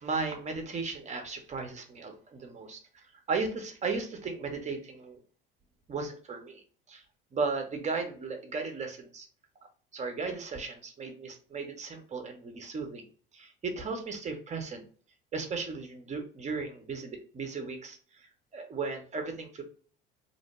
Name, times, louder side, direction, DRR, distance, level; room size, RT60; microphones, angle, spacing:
voice 1, 0.0-5.2 5.9-6.6 6.9-7.0 7.3-9.3 9.9-13.0 13.3-14.8 15.3-19.6, right 4 dB, 25° right, 5 dB, 0.7 m, -36 dB
2.6 x 2.1 x 2.9 m, 0.42 s
hypercardioid pair, 65°, 29 cm